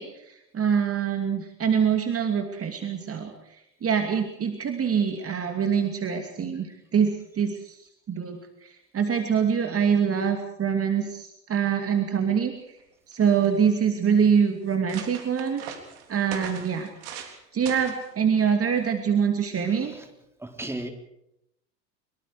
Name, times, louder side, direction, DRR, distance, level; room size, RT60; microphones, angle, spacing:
voice 1, 0.0-3.3 3.8-7.8 8.1-12.5 13.1-15.7 16.1-16.9 17.2-20.0, right 7 dB, 25° right, 5 dB, 2.7 m, -25 dB
sound 1, 12.8-12.9 13.1-13.7 14.3-14.4 14.7-17.4 17.7-18.1 18.8-19.1, right 8 dB, 55° right, 3.9 m, -40 dB
voice 2, 19.6-20.1 20.4-20.9, right 1 dB, 5° right, 4 dB, 3.7 m, -36 dB
24.5 x 23.5 x 5.0 m, 0.81 s
figure-of-eight pair, 75°, 50 cm